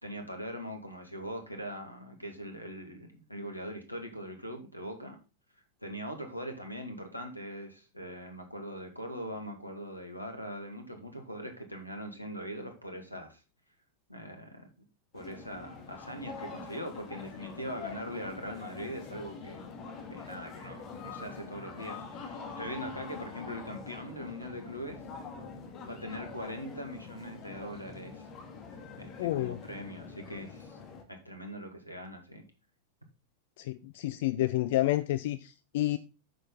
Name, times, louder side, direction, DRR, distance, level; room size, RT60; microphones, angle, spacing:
voice 1, 0.0-5.2 5.8-13.4 14.1-14.7 15.1-19.6 20.1-25.0 25.8-28.3 29.0-30.8 31.1-32.4, equal, 90° left, 2.2 m, -41 dB
sound 1, 15.1-31.0, left 5 dB, 35° left, 2.3 m, -45 dB
voice 2, 29.2-29.6 33.6-36.0, left 15 dB, 55° left, 0.5 m, -29 dB
9.1 x 6.7 x 3.9 m
figure-of-eight pair, 90°, 0 cm